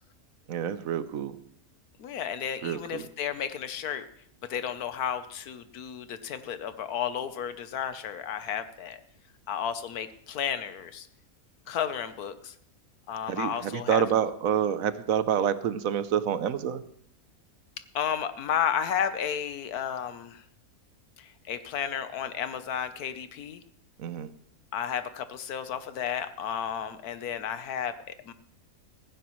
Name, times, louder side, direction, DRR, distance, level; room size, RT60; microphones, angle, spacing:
voice 1, 0.5-1.4 2.6-3.1 13.3-16.8 24.0-24.3, right 9 dB, 70° right, 13 dB, 1.1 m, -28 dB
voice 2, 2.0-4.0 4.4-9.0 9.5-11.1 11.7-12.5 13.1-14.0 17.9-20.4 21.2-23.6 24.7-28.3, left 8 dB, 90° left, 11 dB, 1.4 m, -32 dB
15.5 x 15.0 x 3.1 m, 0.65 s
omnidirectional pair, 1.6 m